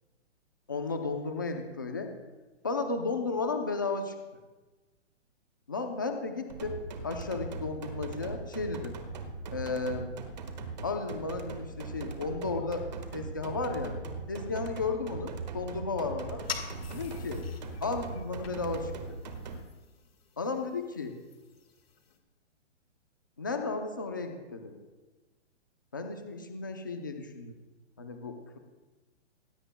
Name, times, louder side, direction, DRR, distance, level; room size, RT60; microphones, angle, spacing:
voice 1, 0.7-2.1 2.6-4.1 5.7-6.8 7.0-9.0 9.5-10.1 10.8-12.9 13.1-13.9 14.3-16.4 16.9-17.4 17.8-19.2 20.4-21.1 23.4-24.7 25.9-27.6 28.0-28.6, left 3 dB, 20° left, 5 dB, 0.6 m, -34 dB
sound 1, 6.5-19.6, right 4 dB, 35° right, 1.5 m, -40 dB
sound 2, 16.4-22.2, left 6 dB, 55° left, 2.0 m, -45 dB
20.0 x 19.0 x 2.2 m, 1.2 s
hypercardioid pair, 180°, 35 cm